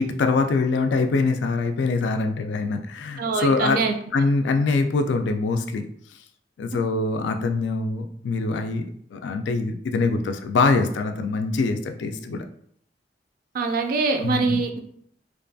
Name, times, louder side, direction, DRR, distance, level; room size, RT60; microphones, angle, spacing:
voice 1, 0.0-3.8 4.1-5.8 6.6-12.4 14.2-14.6, left 3 dB, 85° left, 6 dB, 0.3 m, -24 dB
voice 2, 3.2-3.9 13.5-14.8, right 4 dB, 55° right, 6 dB, 0.3 m, -23 dB
2.5 x 2.3 x 2.5 m, 0.65 s
head